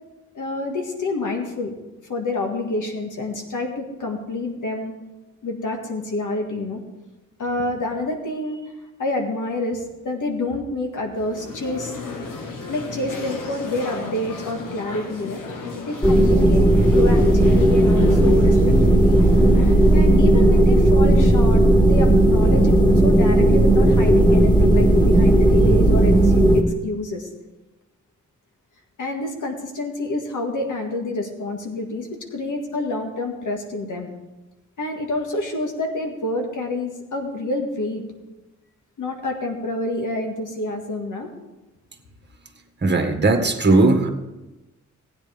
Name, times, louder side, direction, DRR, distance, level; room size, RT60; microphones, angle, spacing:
voice 1, 0.3-1.7 2.1-4.9 5.4-6.8 7.4-8.7 9.0-12.0 12.7-15.4 15.9-16.6 16.9-19.2 19.7-27.3 29.0-34.1 34.8-38.0 39.0-41.3, left 2 dB, 75° left, 2 dB, 2.0 m, -28 dB
sound 1, 11.1-21.2, left 3 dB, 90° left, 1.5 m, -36 dB
sound 2, 16.0-26.6, right 1 dB, 15° left, 2.4 m, -15 dB
voice 2, 42.8-44.1, right 2 dB, 35° right, 4 dB, 1.6 m, -17 dB
16.0 x 9.5 x 3.6 m, 1.1 s
cardioid pair, 55°, 31 cm